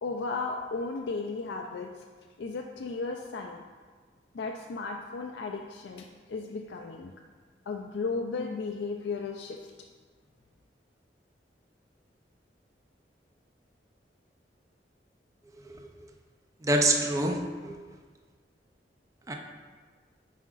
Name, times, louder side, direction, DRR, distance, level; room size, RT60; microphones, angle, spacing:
voice 1, 0.0-1.9 2.4-3.6 4.3-7.1 7.7-9.7, left 4 dB, 80° left, 2 dB, 0.4 m, -35 dB
voice 2, 15.7-16.1 16.6-17.8 19.3-19.4, right 1 dB, 20° right, 3 dB, 0.5 m, -27 dB
9.2 x 5.0 x 2.4 m, 1.5 s
head